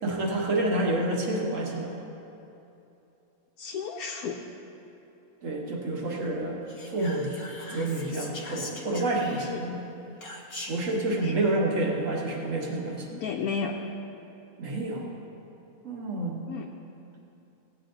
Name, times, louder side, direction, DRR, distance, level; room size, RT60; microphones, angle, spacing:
voice 1, 0.0-1.9 5.4-7.3 7.7-9.8 10.7-13.1 14.6-15.1 15.8-16.5, right 2 dB, 60° right, -1 dB, 1.7 m, -28 dB
voice 2, 3.6-4.4 9.3-9.6 11.2-11.4 13.1-13.7 16.5-16.7, left 6 dB, 75° left, 1 dB, 1.1 m, -33 dB
Whispering, 6.7-9.7 10.2-11.0, left 2 dB, 45° left, 1.5 m, -41 dB
16.5 x 8.8 x 3.9 m, 2.8 s
omnidirectional pair, 1.6 m